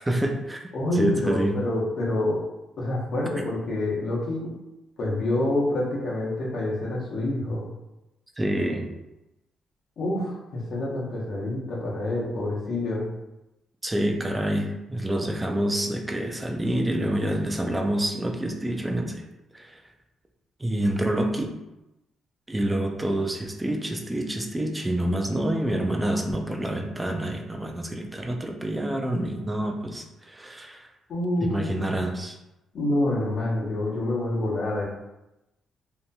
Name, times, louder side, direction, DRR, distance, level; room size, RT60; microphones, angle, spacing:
voice 1, 0.1-0.7 0.9-1.6 8.4-8.9 13.8-19.2 19.5-19.8 20.6-21.5 22.5-30.9 31.4-32.4, right 1 dB, 15° right, 3 dB, 0.4 m, -27 dB
voice 2, 0.7-2.4 2.8-4.5 5.0-7.7 10.0-13.1 31.1-32.0 32.7-34.8, left 1 dB, 60° left, -5 dB, 1.0 m, -27 dB
2.8 x 2.5 x 2.2 m, 0.95 s
cardioid pair, 85°, 0 cm